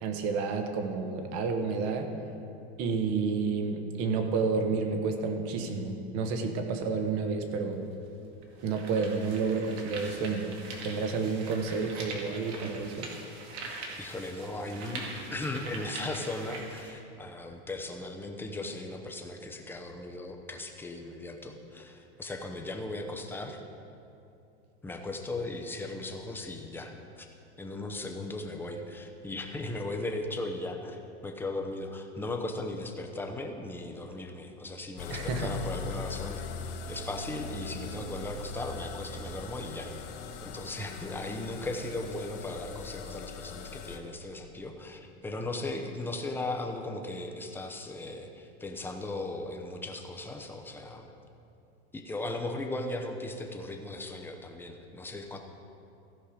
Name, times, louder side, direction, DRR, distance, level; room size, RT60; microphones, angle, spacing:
voice 1, 0.0-2.1 2.8-7.8 8.6-10.5 10.8-13.1 35.1-35.5, right 4 dB, 45° right, 6 dB, 1.3 m, -30 dB
sound 1, 7.7-7.8 8.4-16.9, right 3 dB, 80° right, 2.2 m, -43 dB
voice 2, 14.0-15.1 15.3-23.6 24.8-27.3 27.6-36.4 36.9-39.9 40.4-51.1 51.9-55.4, left 2 dB, 5° left, 3 dB, 0.8 m, -37 dB
sound 2, 35.0-44.0, left 5 dB, 55° left, 1.3 m, -40 dB
16.0 x 5.5 x 5.0 m, 2.6 s
supercardioid pair, 135°, 32 cm